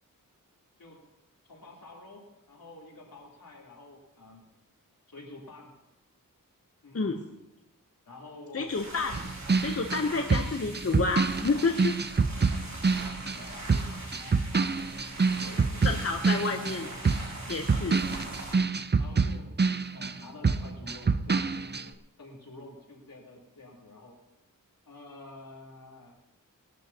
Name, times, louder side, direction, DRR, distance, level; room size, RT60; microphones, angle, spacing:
voice 1, 1.5-4.5 5.1-5.7 6.8-7.4 8.1-8.8 10.6-10.8 13.3-13.9 14.1-15.0 15.3-17.3 18.1-18.4 19.0-19.5 19.9-24.2 24.9-26.2, left 2 dB, 80° left, -3 dB, 3.6 m, -49 dB
voice 2, 8.5-9.3 9.6-12.0 15.8-16.9 17.5-18.0, left 4 dB, 45° left, 4 dB, 0.9 m, -29 dB
sound 1, 8.7-18.5, right 2 dB, 55° right, 3.1 m, -42 dB
sound 2, 9.1-13.4 13.7-20.2 20.4-21.9, right 4 dB, 30° right, 0.5 m, -26 dB
21.0 x 12.0 x 2.9 m, 0.94 s
wide cardioid pair, 65°, 34 cm